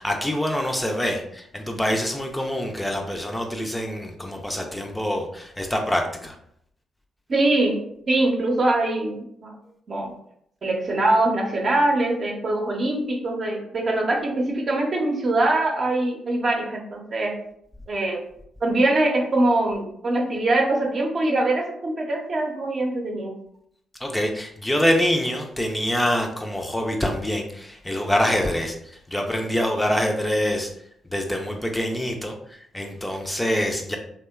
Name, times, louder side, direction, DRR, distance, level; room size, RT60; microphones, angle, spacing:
voice 1, 0.0-6.4 24.0-30.7 31.0-34.0, equal, 10° left, 2 dB, 0.4 m, -25 dB
voice 2, 7.3-7.8 8.1-9.5 9.9-10.1 10.6-17.3 17.9-18.2 18.6-23.3, right 2 dB, 50° right, 0 dB, 0.7 m, -23 dB
2.7 x 2.1 x 2.3 m, 0.71 s
hypercardioid pair, 40°, 0 cm